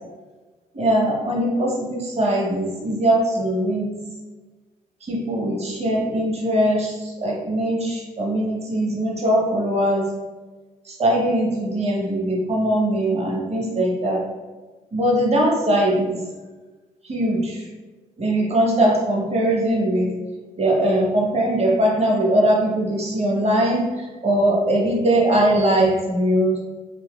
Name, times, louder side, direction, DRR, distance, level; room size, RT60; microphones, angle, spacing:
voice 1, 0.7-4.0 5.0-10.1 10.8-14.3 14.9-16.2 17.0-17.7 18.2-20.1 20.6-26.6, right 1 dB, 40° right, -2 dB, 1.1 m, -21 dB
4.0 x 2.6 x 2.4 m, 1.3 s
hypercardioid pair, 55°, 17 cm